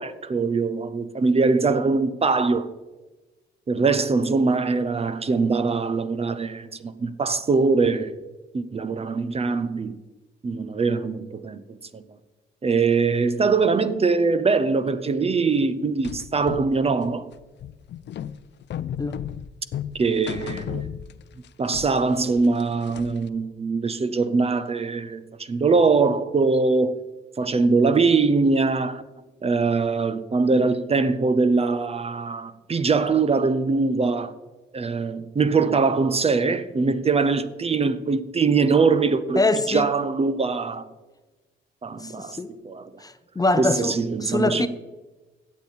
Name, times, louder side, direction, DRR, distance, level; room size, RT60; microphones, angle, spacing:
voice 1, 0.0-2.7 3.7-8.1 8.5-10.0 10.4-11.6 11.9-12.0 12.6-17.3 19.9-20.9 21.6-27.0 27.4-29.0 29.4-34.3 34.7-39.4 39.7-40.9 41.8-42.4 42.6-42.9 43.6-44.7, right 4 dB, 30° right, 0.7 m, -22 dB
sound 1, 16.0-21.5 21.7-23.3, left 10 dB, 60° left, 0.5 m, -34 dB
voice 2, 39.4-39.9 42.0-42.5 43.0-44.7, left 2 dB, 20° left, 0.7 m, -24 dB
15.5 x 8.4 x 4.1 m
cardioid pair, 90°, 20 cm